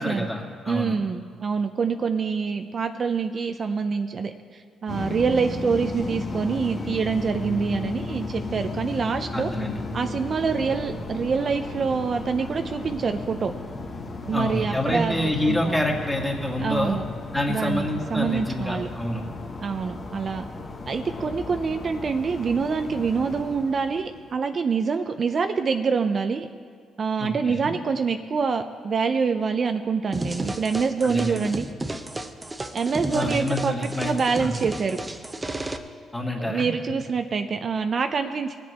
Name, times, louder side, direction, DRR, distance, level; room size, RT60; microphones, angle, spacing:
voice 1, 0.0-1.0 9.3-9.8 14.3-17.0 17.3-19.2 27.2-27.7 31.0-31.5 33.1-34.5 36.1-36.7, left 1 dB, 10° left, 0 dB, 1.9 m, -27 dB
voice 2, 0.7-9.5 9.9-13.5 14.2-15.8 16.6-17.1 17.5-18.9 19.6-20.5 20.9-26.5 27.0-31.7 32.7-35.0 36.4-38.6, right 5 dB, 45° right, 7 dB, 0.5 m, -26 dB
sound 1, 4.9-24.3, left 3 dB, 50° left, 1.4 m, -35 dB
sound 2, 30.1-35.8, right 1 dB, 15° right, 0.8 m, -32 dB
20.0 x 7.4 x 4.3 m, 2.1 s
cardioid pair, 90°, 0 cm